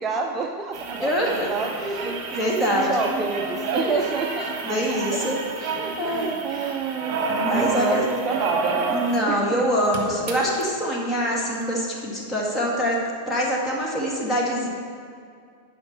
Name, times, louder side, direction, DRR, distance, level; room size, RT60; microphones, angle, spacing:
voice 1, 0.0-4.6 4.9-5.3 5.8-7.2 7.5-9.7, right 4 dB, 25° right, 3 dB, 0.6 m, -29 dB
sound 1, 0.7-9.3 9.6-9.7 9.9-10.6 11.6-11.7, right 4 dB, 40° right, 1.2 m, -29 dB
voice 2, 1.0-1.5 2.3-2.9 3.8-4.0 4.6-6.7 7.4-8.1 8.9-13.0 13.3-14.7, equal, 20° left, -2 dB, 1.9 m, -25 dB
11.0 x 4.9 x 5.7 m, 2.2 s
figure-of-eight pair, 90°, 0 cm